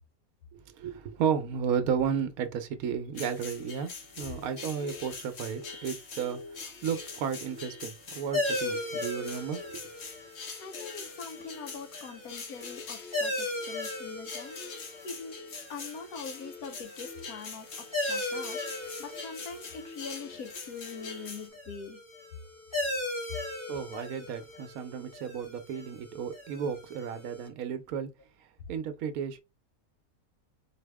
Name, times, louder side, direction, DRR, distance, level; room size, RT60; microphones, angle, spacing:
voice 1, 0.5-3.9 4.2-9.8 23.7-28.1 28.4-29.4, right 7 dB, 75° right, 1.1 m, -33 dB
sound 1, 3.1-21.5, left 4 dB, 50° left, 1.1 m, -43 dB
sound 2, 8.3-27.5, left 2 dB, 20° left, 1.6 m, -38 dB
voice 2, 10.6-14.6 15.0-15.4 15.7-18.6 19.0-22.0, left 5 dB, 85° left, 1.4 m, -43 dB
4.0 x 2.8 x 3.4 m
omnidirectional pair, 1.5 m